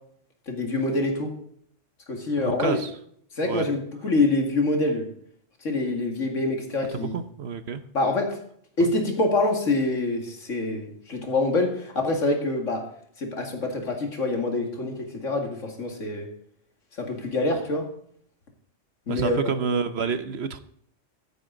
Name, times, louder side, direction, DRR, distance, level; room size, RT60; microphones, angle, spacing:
voice 1, 0.5-1.3 2.1-2.8 3.3-5.1 5.6-7.2 7.9-8.4 8.8-12.8 13.2-16.3 17.0-17.9 19.1-19.5, left 2 dB, 80° left, 3 dB, 2.5 m, -25 dB
voice 2, 2.4-2.9 3.4-3.7 6.9-7.8 8.8-8.9 19.1-20.6, right 6 dB, 60° right, 11 dB, 1.1 m, -28 dB
13.5 x 9.9 x 3.9 m, 0.65 s
omnidirectional pair, 1.3 m